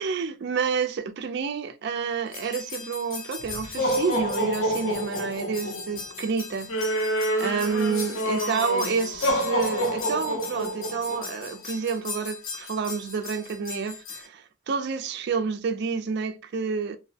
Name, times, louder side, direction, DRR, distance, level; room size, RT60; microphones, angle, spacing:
voice 1, 0.0-7.1 7.4-17.0, right 5 dB, 50° right, 0.3 m, -29 dB
sound 1, 2.3-14.2, equal, 75° left, 0.7 m, -29 dB
2.5 x 2.0 x 2.6 m
head